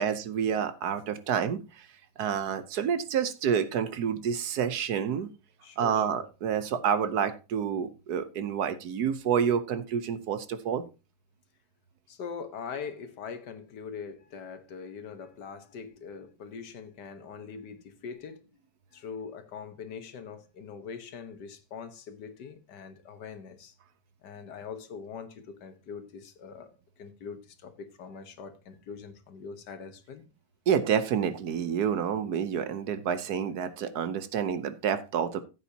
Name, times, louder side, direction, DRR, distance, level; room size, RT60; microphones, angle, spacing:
voice 1, 0.0-1.9 2.2-5.3 5.8-10.8 30.7-35.4, right 7 dB, 70° right, 1.3 m, -28 dB
voice 2, 5.6-6.2 12.1-18.4 18.9-23.7 24.2-26.7 27.0-30.2, left 6 dB, 75° left, 1.7 m, -42 dB
14.5 x 8.2 x 2.8 m
omnidirectional pair, 1.9 m